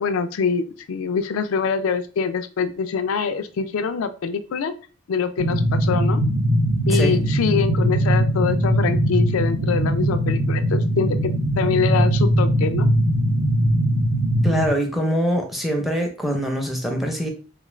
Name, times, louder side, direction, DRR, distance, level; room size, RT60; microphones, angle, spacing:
voice 1, 0.0-4.7 5.1-6.2 6.9-11.2 11.6-12.9, left 5 dB, 90° left, 0.4 m, -24 dB
sound 1, 5.4-14.7, right 1 dB, 85° right, 0.7 m, -20 dB
voice 2, 14.4-17.3, equal, ahead, 0.6 m, -23 dB
3.6 x 2.4 x 3.1 m
head